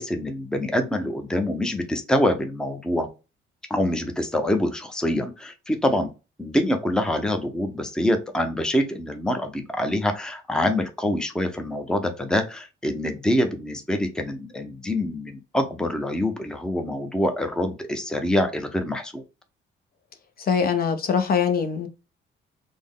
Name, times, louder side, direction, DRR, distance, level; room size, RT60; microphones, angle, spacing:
voice 1, 0.0-3.1 3.7-6.1 6.4-19.2, left 1 dB, 5° left, 6 dB, 0.6 m, -25 dB
voice 2, 20.4-21.9, left 6 dB, 50° left, 8 dB, 0.6 m, -23 dB
3.4 x 2.1 x 3.6 m, 0.30 s
cardioid pair, 90°, 20 cm